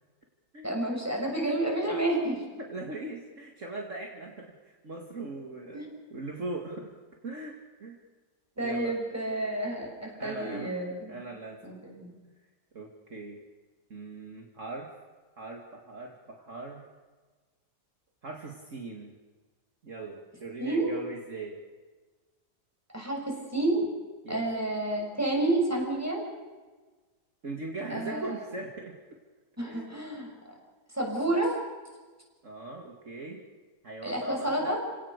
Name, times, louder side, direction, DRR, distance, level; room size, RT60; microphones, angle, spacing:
voice 1, 0.6-2.4 5.7-5.9 8.6-11.2 11.6-12.1 20.6-20.9 22.9-23.9 24.3-26.2 27.9-28.3 29.6-30.3 30.9-31.6 34.0-34.8, right 2 dB, 10° right, 0 dB, 6.4 m, -30 dB
voice 2, 2.6-5.8 6.1-6.9 7.2-8.0 8.6-9.0 10.0-10.7 11.1-11.8 12.7-13.4 13.9-14.9 15.4-16.8 18.2-19.1 19.8-21.6 24.2-24.5 27.4-28.9 29.6-29.9 32.4-33.4 33.8-34.8, right 2 dB, 45° right, 1 dB, 2.6 m, -40 dB
30.0 x 18.0 x 6.8 m, 1.3 s
omnidirectional pair, 1.8 m